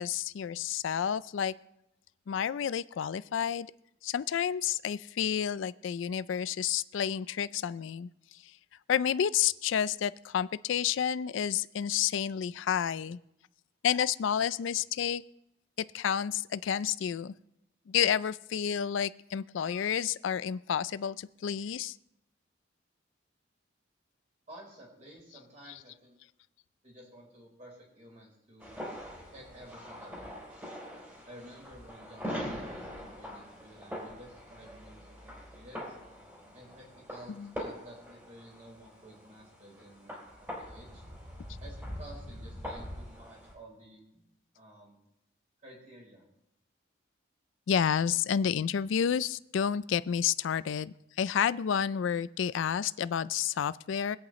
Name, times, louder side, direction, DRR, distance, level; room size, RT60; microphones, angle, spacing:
voice 1, 0.0-1.5 2.3-3.7 4.0-8.5 8.9-13.2 13.8-15.2 15.8-17.3 17.9-22.0 37.3-37.5 47.7-54.2, left 8 dB, 70° left, 17 dB, 0.3 m, -30 dB
voice 2, 24.5-26.2 26.8-28.8 29.3-30.6 31.3-35.2 35.5-35.9 36.5-41.0 41.6-44.2 44.5-45.0 45.6-46.2, right 1 dB, 35° right, -2 dB, 4.3 m, -52 dB
sound 1, 28.6-43.5, equal, 10° right, 3.6 m, -43 dB
23.5 x 8.5 x 3.1 m, 0.83 s
head